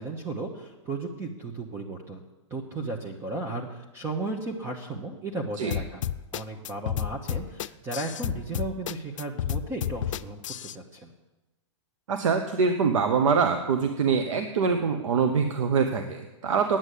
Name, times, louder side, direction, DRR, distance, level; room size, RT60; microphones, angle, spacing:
voice 1, 0.0-2.2 2.5-6.0 6.3-11.1, right 2 dB, 15° right, 2 dB, 0.9 m, -35 dB
sound 1, 5.7-10.8, left 10 dB, 75° left, 0.5 m, -31 dB
voice 2, 12.1-16.8, right 5 dB, 80° right, 7 dB, 1.1 m, -24 dB
9.4 x 8.9 x 8.3 m, 1.0 s
hypercardioid pair, 155°, 16 cm